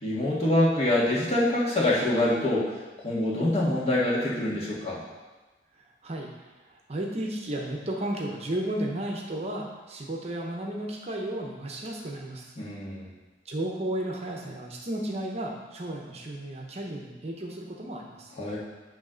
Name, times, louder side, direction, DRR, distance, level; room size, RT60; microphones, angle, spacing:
voice 1, 0.0-2.7 3.0-5.0 12.6-13.0 18.4-18.6, left 1 dB, 35° left, -6 dB, 1.6 m, -25 dB
voice 2, 6.0-6.5 6.9-12.5 13.5-18.3, right 1 dB, 35° right, -1 dB, 0.8 m, -33 dB
9.2 x 3.2 x 5.0 m, 1.2 s
head